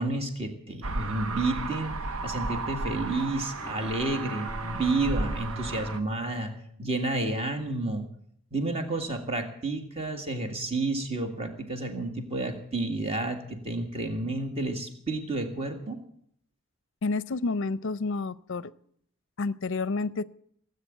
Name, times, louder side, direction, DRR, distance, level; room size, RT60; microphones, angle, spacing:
voice 1, 0.0-2.0 2.2-6.5 6.8-8.1 8.5-16.0, right 2 dB, 25° right, 5 dB, 1.9 m, -30 dB
sound 1, 0.8-6.0, right 3 dB, 70° right, 0.8 m, -34 dB
Bowed string instrument, 3.1-7.3, equal, ahead, 2.4 m, -45 dB
voice 2, 17.0-18.7 19.4-20.2, left 3 dB, 55° left, 18 dB, 0.5 m, -29 dB
18.0 x 8.5 x 9.0 m, 0.65 s
head